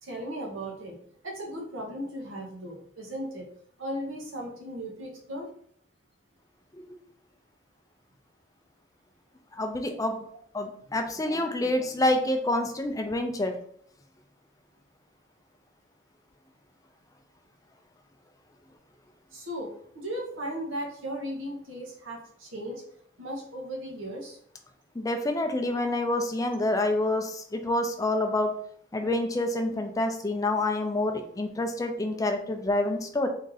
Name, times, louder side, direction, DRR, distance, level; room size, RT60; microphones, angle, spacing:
voice 1, 0.0-1.0 1.2-3.5 3.8-5.5 10.3-10.4 19.3-22.8 23.2-24.4, equal, 80° right, -1 dB, 1.1 m, -36 dB
voice 2, 9.6-10.2 10.5-13.5 25.0-28.5 28.9-33.3, left 1 dB, 15° left, 5 dB, 0.4 m, -27 dB
3.7 x 2.6 x 3.9 m, 0.63 s
head